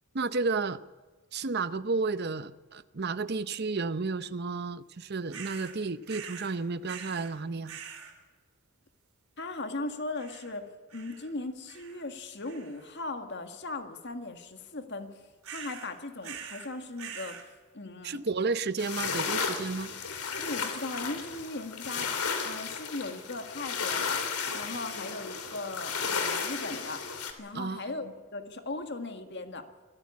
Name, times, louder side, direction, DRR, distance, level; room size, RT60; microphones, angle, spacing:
voice 1, 0.1-0.8 1.3-7.8 18.0-19.9 27.5-27.8, right 4 dB, 45° right, 14 dB, 0.7 m, -32 dB
sound 1, 5.3-5.8 6.1-6.5 6.8-7.3 7.7-8.1 10.2-10.6 10.9-11.3 11.7-12.1 12.4-12.9 15.4-15.9 16.2-16.7 17.0-17.5, right 7 dB, 70° right, 3.7 m, -44 dB
voice 2, 9.4-15.2 15.5-17.4 17.7-18.2 20.3-24.2 24.5-27.0 27.4-29.7, left 2 dB, 50° left, 7 dB, 1.8 m, -38 dB
sound 2, 18.8-27.3, left 5 dB, 85° left, 2.8 m, -34 dB
24.5 x 14.0 x 8.4 m, 1.3 s
head